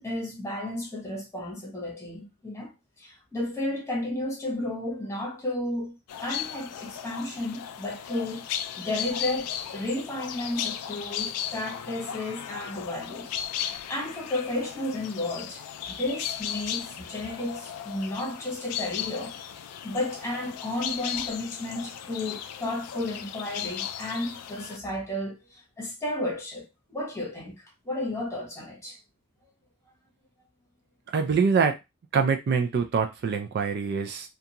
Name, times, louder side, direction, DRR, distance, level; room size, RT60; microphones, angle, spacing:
voice 1, 0.0-2.7 3.0-6.0 6.2-8.5 8.7-13.3 13.9-15.6 15.9-19.4 19.8-25.4 25.8-26.6 26.9-29.0, left 1 dB, 15° left, 1.0 m, -32 dB
sound 1, 6.1-24.8, left 9 dB, 90° left, 0.3 m, -36 dB
voice 2, 31.1-31.8 32.1-34.3, right 5 dB, 50° right, 0.3 m, -24 dB
2.5 x 2.3 x 2.8 m
head